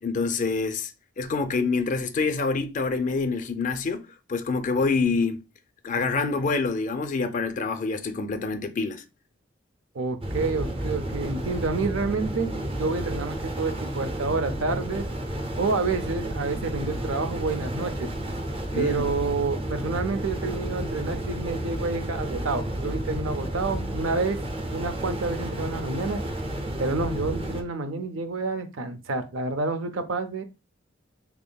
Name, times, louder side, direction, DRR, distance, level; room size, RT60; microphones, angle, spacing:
voice 1, 0.0-0.9 1.2-5.4 5.8-9.0 18.7-19.1, left 4 dB, 40° left, 0.4 m, -26 dB
voice 2, 9.9-12.5 12.8-15.0 15.6-18.1 18.7-24.4 24.7-26.2 26.8-30.4, right 3 dB, 80° right, 0.5 m, -29 dB
sound 1, 10.2-27.6, right 1 dB, 30° right, 0.5 m, -31 dB
3.5 x 3.4 x 2.2 m
head